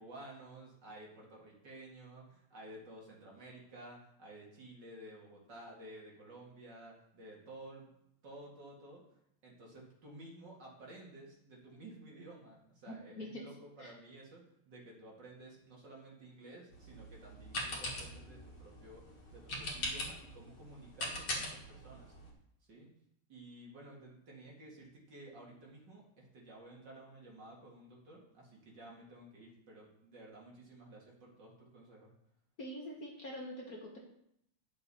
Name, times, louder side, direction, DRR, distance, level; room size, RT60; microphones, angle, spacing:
voice 1, 0.0-7.9 8.2-9.0 9.4-22.1 22.7-22.9 23.3-32.1, right 1 dB, 55° right, -3 dB, 2.6 m, -53 dB
voice 2, 12.9-13.4 13.8-13.9 32.6-34.0, equal, 45° left, -1 dB, 1.6 m, -45 dB
sound 1, 16.7-22.3, left 1 dB, 70° left, 2.6 m, -42 dB
9.5 x 6.9 x 4.2 m, 0.75 s
omnidirectional pair, 2.4 m